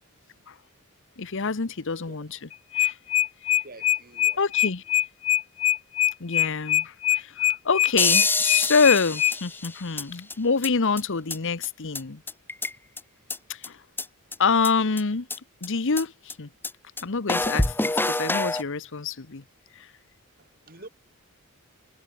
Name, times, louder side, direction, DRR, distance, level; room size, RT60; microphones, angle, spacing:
voice 1, 1.2-2.5 2.7-2.9 4.4-4.8 6.2-7.3 7.6-12.2 13.5-13.8 14.4-15.3 15.6-16.5 17.0-19.4 19.8-19.9, left 5 dB, 60° left, 1.0 m, -26 dB
sound 1, 2.5-9.3, left 13 dB, 75° left, 1.4 m, -22 dB
voice 2, 3.5-4.4 12.8-12.9 20.4-20.9, right 2 dB, 40° right, 7.2 m, -47 dB
sound 2, 8.0-10.0 10.3-10.4 10.6-10.7 11.0-11.1 11.3-11.4 11.6-11.7 11.9-12.0 12.3-13.0 13.3-13.4 13.6-13.7 14.0-14.1 14.3-14.4 14.6-14.7 15.0-15.1 15.3-15.4 15.6-15.7 16.0-16.1 16.3-16.4 16.6-16.7 17.0-17.1 17.3-18.6, left 2 dB, 10° left, 1.0 m, -26 dB
head